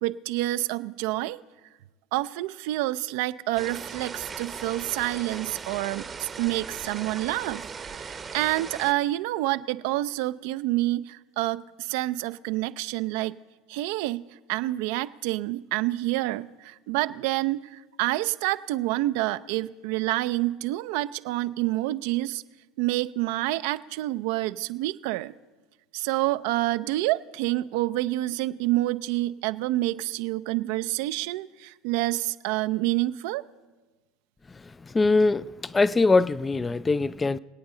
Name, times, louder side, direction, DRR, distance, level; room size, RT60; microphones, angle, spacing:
voice 1, 0.0-1.4 2.1-7.6 7.9-13.4 13.7-14.2 14.5-22.4 22.8-25.3 25.9-33.4, right 17 dB, 65° right, 0.3 m, -28 dB
sound 1, 3.6-8.9, right 5 dB, 25° right, 0.7 m, -38 dB
voice 2, 34.9-37.4, left 3 dB, 20° left, 0.3 m, -22 dB
24.5 x 8.7 x 3.8 m
hypercardioid pair, 85°, 0 cm